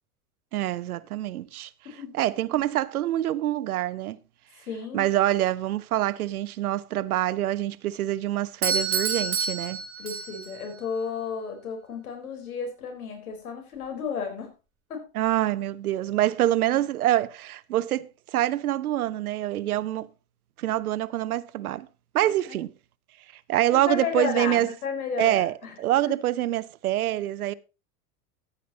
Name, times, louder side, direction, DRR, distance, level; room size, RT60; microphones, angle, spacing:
voice 1, 0.5-1.7 2.1-4.2 4.9-9.8 15.1-20.1 20.6-21.9 22.1-22.7 23.5-24.7 25.2-27.5, right 13 dB, 85° right, 0.8 m, -26 dB
voice 2, 1.8-2.2 4.7-5.1 10.0-14.5 14.9-15.0 22.2-22.6 23.7-25.8, left 6 dB, 85° left, 4.5 m, -33 dB
Doorbell, 8.6-10.6, right 5 dB, 30° right, 4.1 m, -28 dB
14.0 x 9.3 x 2.9 m
hypercardioid pair, 85°, 43 cm